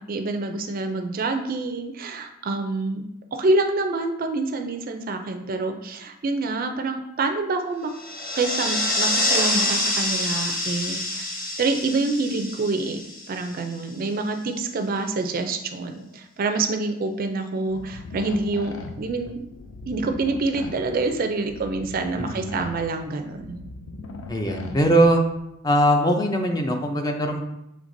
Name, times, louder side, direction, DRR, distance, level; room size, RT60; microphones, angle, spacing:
voice 1, 0.0-3.0 3.3-7.9 8.3-11.2 11.6-19.3 19.9-23.7, right 3 dB, 45° right, 6 dB, 0.4 m, -26 dB
sound 1, 7.9-13.8, left 1 dB, 45° left, 1.2 m, -26 dB
sound 2, 17.7-25.4, left 2 dB, 75° left, 0.5 m, -39 dB
voice 2, 22.2-22.6 24.3-25.2 25.6-27.4, right 1 dB, 20° left, 3 dB, 0.4 m, -21 dB
6.4 x 3.2 x 2.6 m, 0.84 s
head